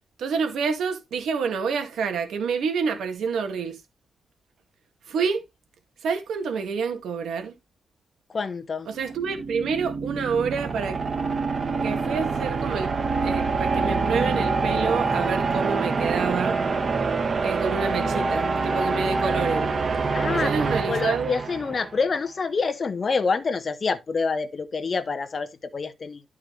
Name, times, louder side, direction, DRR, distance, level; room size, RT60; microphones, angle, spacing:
voice 1, 0.2-3.8 5.1-5.4 6.0-7.5 8.9-11.0 11.8-12.9 13.2-16.6 17.4-19.7 20.3-21.3, right 5 dB, 80° right, 2.2 m, -28 dB
voice 2, 8.3-8.9 20.1-26.2, left 4 dB, 40° left, 1.0 m, -27 dB
sound 1, 8.9-22.0, right 4 dB, 45° right, 1.4 m, -26 dB
12.0 x 4.8 x 3.4 m
cardioid pair, 95°, 0 cm